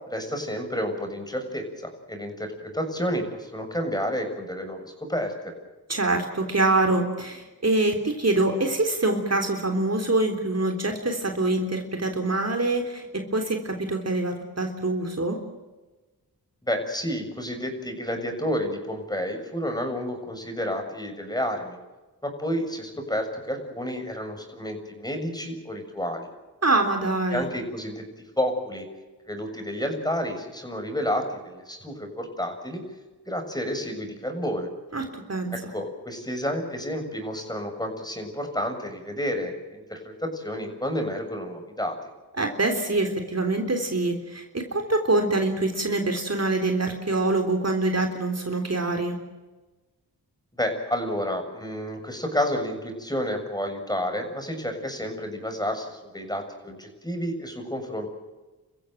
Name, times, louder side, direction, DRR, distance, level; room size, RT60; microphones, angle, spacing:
voice 1, 0.1-5.5 16.6-21.8 22.2-26.3 27.3-28.0 28.4-28.9 29.3-32.8 33.3-34.7 35.5-42.0 50.5-58.1, equal, 10° left, 4 dB, 6.9 m, -30 dB
voice 2, 5.9-15.4 26.6-27.5 34.9-35.5 42.4-49.2, right 2 dB, 40° right, 4 dB, 3.7 m, -25 dB
29.5 x 15.5 x 9.1 m, 1.2 s
cardioid pair, 60°, 38 cm